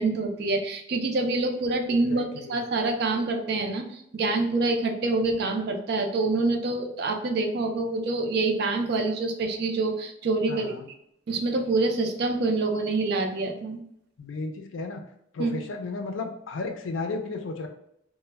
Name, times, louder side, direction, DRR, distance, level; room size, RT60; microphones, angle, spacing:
voice 1, 0.0-10.8 11.3-13.8 15.4-15.5, right 3 dB, 50° right, 4 dB, 0.4 m, -26 dB
voice 2, 2.1-2.6 10.5-10.9 14.2-15.0 15.3-17.7, left 3 dB, 70° left, 5 dB, 0.4 m, -33 dB
2.1 x 2.1 x 3.3 m, 0.75 s
head